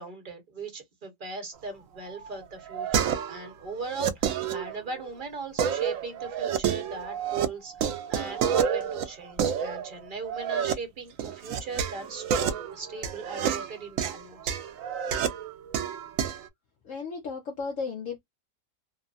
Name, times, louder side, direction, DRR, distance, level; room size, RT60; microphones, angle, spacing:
voice 1, 0.0-14.6, right 3 dB, 35° right, 1.2 m, -39 dB
sound 1, 2.1-3.5 3.8-5.1 5.6-7.5 7.7-10.7 11.2-16.5, right 8 dB, 65° right, 0.8 m, -29 dB
voice 2, 16.8-18.2, left 4 dB, 55° left, 1.0 m, -34 dB
3.0 x 2.1 x 2.5 m
omnidirectional pair, 1.8 m